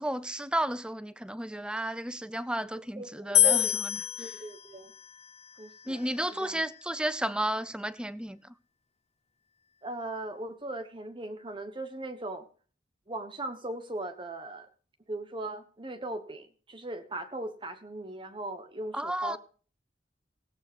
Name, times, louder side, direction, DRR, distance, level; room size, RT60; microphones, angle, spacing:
voice 1, 0.0-4.3 5.9-8.4 18.9-19.4, right 1 dB, 5° right, 0.6 m, -33 dB
voice 2, 3.0-3.8 4.2-4.9 5.6-6.6 9.8-12.4 13.1-14.7 15.1-19.4, right 2 dB, 30° right, 1.3 m, -38 dB
sound 1, 3.3-6.6, left 12 dB, 35° left, 0.7 m, -28 dB
17.5 x 8.2 x 6.1 m
head